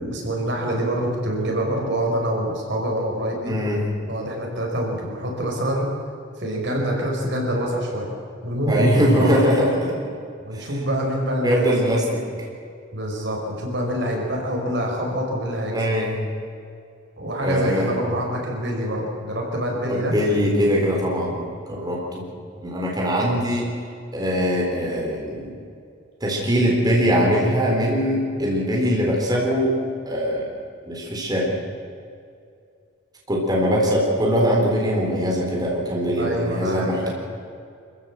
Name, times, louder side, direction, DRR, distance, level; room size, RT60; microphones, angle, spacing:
voice 1, 0.0-3.5 4.0-5.9 6.4-8.2 8.4-9.3 10.4-11.7 12.9-15.9 17.2-20.1 36.2-37.1, equal, 65° right, 0 dB, 5.3 m, -25 dB
voice 2, 3.4-3.8 8.7-9.9 10.5-10.7 11.4-12.0 15.7-16.1 17.4-18.0 19.9-22.2 22.6-23.7 24.1-25.5 26.2-29.7 30.1-30.5 30.9-31.5 33.3-37.1, equal, 20° right, -2 dB, 4.1 m, -21 dB
26.0 x 15.5 x 7.7 m, 2.4 s
head